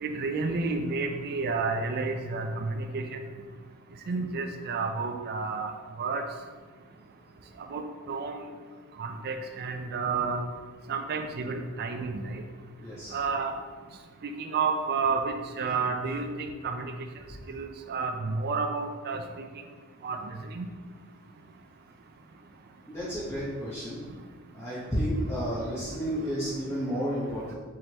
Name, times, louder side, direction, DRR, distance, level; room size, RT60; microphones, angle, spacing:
voice 1, 0.0-3.3 4.1-5.7 6.0-6.2 7.7-8.5 9.0-10.4 10.9-12.4 13.1-13.5 14.2-16.9 17.5-19.2 20.0-20.2 20.5-20.7, right 4 dB, 45° right, 5 dB, 0.4 m, -30 dB
voice 2, 12.8-13.2 22.9-24.0 24.5-27.5, equal, 15° left, -10 dB, 0.9 m, -31 dB
4.5 x 3.3 x 2.9 m, 1.5 s
head